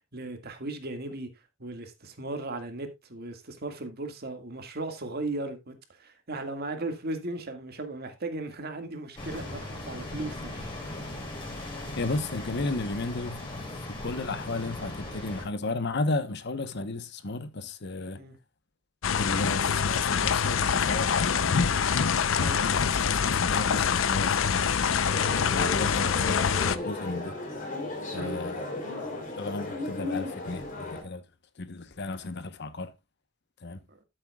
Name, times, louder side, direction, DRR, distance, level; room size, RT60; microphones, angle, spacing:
voice 1, 0.1-1.3 1.6-10.7 18.2-18.4 22.4-22.6 28.1-28.4 33.9-34.0, right 2 dB, 50° right, 1.9 m, -37 dB
sound 1, 9.2-15.5, left 1 dB, 25° left, 4.4 m, -38 dB
voice 2, 12.0-13.5 13.8-18.2 19.2-21.7 22.6-25.2 25.5-27.3 28.1-28.6 29.3-31.2 31.6-32.9 33.6-33.8, left 2 dB, 60° left, 0.9 m, -34 dB
sound 2, 19.0-26.8, left 6 dB, 85° left, 0.6 m, -25 dB
sound 3, 25.1-31.0, left 2 dB, 45° left, 3.1 m, -35 dB
13.5 x 7.7 x 2.3 m
head